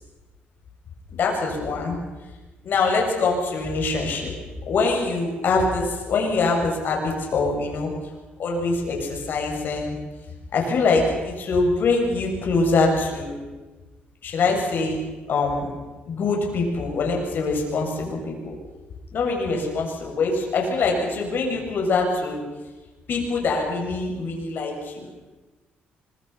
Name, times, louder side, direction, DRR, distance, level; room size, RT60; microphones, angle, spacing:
voice 1, 1.1-2.0 2.6-4.3 4.7-7.9 8.4-10.0 10.5-13.3 14.2-15.0 15.3-15.7 16.1-18.6 19.1-22.4 23.1-25.1, left 3 dB, 60° left, 1 dB, 7.5 m, -24 dB
25.0 x 23.0 x 6.0 m, 1.2 s
cardioid pair, 95°, 4 cm